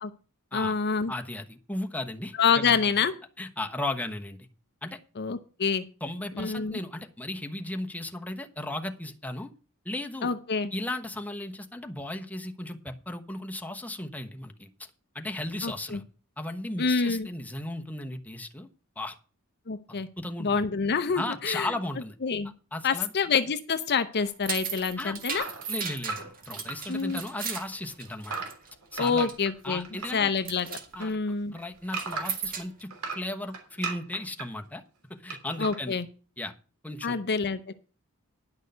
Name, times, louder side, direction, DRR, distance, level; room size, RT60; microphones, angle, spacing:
voice 1, 0.5-1.1 2.4-3.1 5.2-5.8 6.4-6.8 10.2-10.7 15.6-16.0 16.8-17.3 19.7-20.1 20.4-21.7 22.2-22.5 22.8-25.4 26.9-27.2 29.0-29.8 30.1-31.5 35.6-36.1 37.0-37.7, left 5 dB, 50° left, 11 dB, 0.7 m, -27 dB
voice 2, 1.1-2.8 3.4-4.5 4.8-5.0 6.0-9.5 9.8-10.3 10.7-14.9 15.1-16.0 16.4-18.7 19.0-19.2 19.9-20.6 21.1-22.1 22.7-23.1 25.0-25.1 25.7-28.5 28.9-29.3 29.6-30.3 30.9-34.8 35.1-36.0 36.4-36.5 36.8-37.2, left 1 dB, 5° left, 3 dB, 1.0 m, -36 dB
sound 1, 24.2-28.7 28.9-29.4 29.8-30.1 30.3-30.9 31.8-32.8, right 6 dB, 40° right, 1.8 m, -36 dB
sound 2, 25.3-27.2 27.5-30.2 30.6-32.5 32.9-34.5 35.3-35.8, right 5 dB, 70° right, 3.2 m, -37 dB
10.5 x 6.4 x 6.7 m, 0.36 s
head